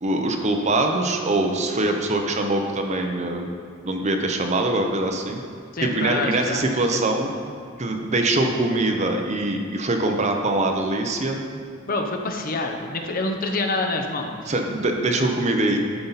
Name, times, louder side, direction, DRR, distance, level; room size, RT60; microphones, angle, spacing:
voice 1, 0.0-3.5 3.8-5.4 5.8-7.3 7.8-11.4 14.5-15.8, right 2 dB, 35° right, 3 dB, 0.7 m, -23 dB
voice 2, 5.7-6.6 6.9-7.0 11.9-14.3, left 2 dB, 45° left, 4 dB, 0.6 m, -26 dB
11.0 x 5.5 x 4.0 m, 2.2 s
head